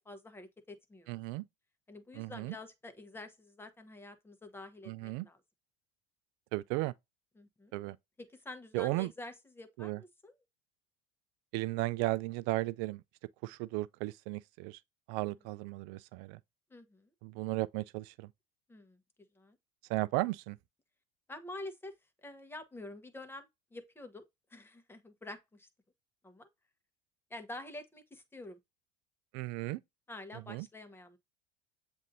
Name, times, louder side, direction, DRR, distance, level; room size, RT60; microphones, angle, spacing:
voice 1, 0.0-1.1 1.9-5.4 7.4-7.8 8.2-10.3 16.7-17.1 18.7-19.0 19.4-19.6 21.3-21.9 22.2-25.7 26.2-26.5 27.3-28.6 30.1-31.2, left 2 dB, 10° left, 1.0 m, -48 dB
voice 2, 1.1-1.4 2.1-2.5 4.9-5.3 6.5-6.9 7.7-8.0 8.7-9.1 9.8-10.0 11.5-13.0 13.4-14.8 15.1-16.4 17.2-18.3 19.9-20.6 29.3-29.8 30.3-30.7, right 20 dB, 65° right, 0.4 m, -35 dB
7.3 x 2.7 x 2.6 m
supercardioid pair, 90°, 20 cm